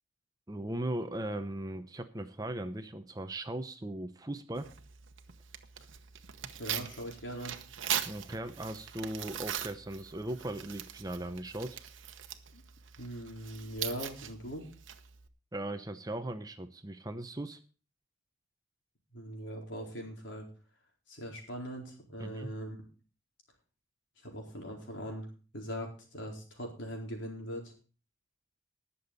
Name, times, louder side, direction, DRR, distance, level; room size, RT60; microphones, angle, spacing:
voice 1, 0.5-4.7 8.1-11.8 15.5-17.6 22.2-22.5, right 1 dB, 20° right, 8 dB, 0.7 m, -38 dB
Tearing, 4.5-15.3, right 10 dB, 75° right, 1.0 m, -41 dB
voice 2, 6.6-7.6 12.5-12.6 13.0-14.7 19.1-20.4 21.1-22.8 24.2-25.3 25.5-27.7, equal, 70° left, 0 dB, 4.2 m, -41 dB
19.5 x 7.0 x 4.1 m, 0.37 s
head